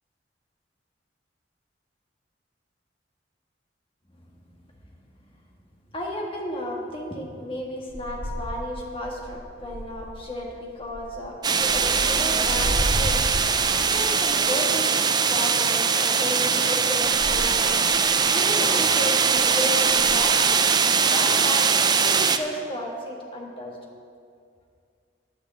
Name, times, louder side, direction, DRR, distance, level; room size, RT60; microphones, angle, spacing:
voice 1, 5.9-13.2 13.8-17.8 18.3-20.5 21.0-23.8, left 1 dB, 30° left, -1 dB, 1.8 m, -33 dB
sound 1, 7.9-8.8 9.1-10.2 10.8-11.2 11.6-14.0 17.0-18.2 19.3-19.5 19.9-20.3 21.3-21.4, equal, 80° left, 2.2 m, -32 dB
sound 2, 11.4-22.4, right 6 dB, 25° right, 0.4 m, -21 dB
9.9 x 6.5 x 8.3 m, 2.3 s
head